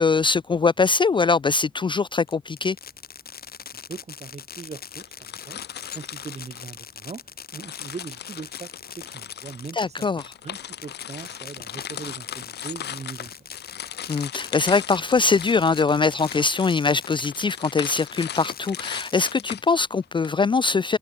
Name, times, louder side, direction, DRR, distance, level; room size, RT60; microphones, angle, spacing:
voice 1, 0.0-2.8 9.8-10.3 14.1-21.0, left 4 dB, 30° left, 0.4 m, -22 dB
Fireworks, 2.3-17.5 17.9-19.7, left 7 dB, 65° left, 1.4 m, -42 dB
voice 2, 3.9-5.6 5.9-7.2 7.5-10.1 10.4-13.5, right 5 dB, 40° right, 1.3 m, -40 dB
sound 1, 4.9-7.2 7.6-20.3, left 10 dB, 80° left, 0.7 m, -38 dB
cardioid pair, 80°, 17 cm